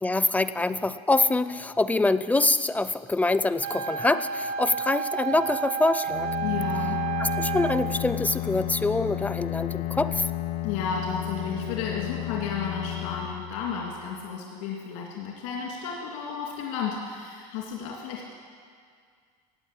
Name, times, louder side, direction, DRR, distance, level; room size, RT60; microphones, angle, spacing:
voice 1, 0.0-6.3 7.2-10.3, left 2 dB, 10° left, 13 dB, 0.4 m, -25 dB
Wind instrument woodwind instrument, 3.6-8.0, right 7 dB, 65° right, 0.8 m, -31 dB
Bowed string instrument, 6.1-14.1, left 14 dB, 60° left, 0.8 m, -32 dB
voice 2, 6.4-7.0 10.6-18.3, left 6 dB, 80° left, -2 dB, 2.8 m, -33 dB
17.0 x 8.6 x 8.4 m, 2.1 s
supercardioid pair, 115°, 16 cm